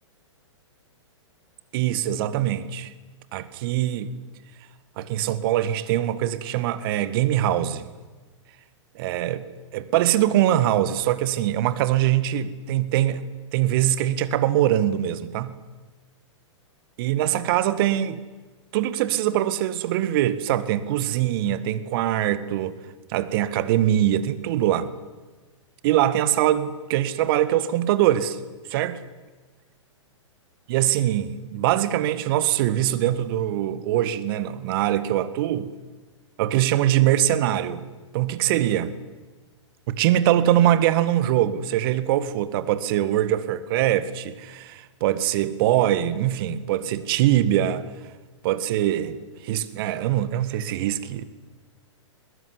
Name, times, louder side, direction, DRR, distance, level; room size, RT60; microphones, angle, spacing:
voice 1, 1.7-2.9 3.3-4.1 5.0-7.9 9.0-9.5 9.7-13.2 13.5-15.6 17.0-18.2 18.7-22.8 23.1-24.9 25.8-28.4 28.7-29.0 30.7-35.7 36.4-37.8 38.1-38.9 39.9-47.9 48.4-51.3, right 12 dB, 45° right, 2.0 m, -23 dB
22.0 x 20.0 x 9.9 m
hypercardioid pair, 120°, 16 cm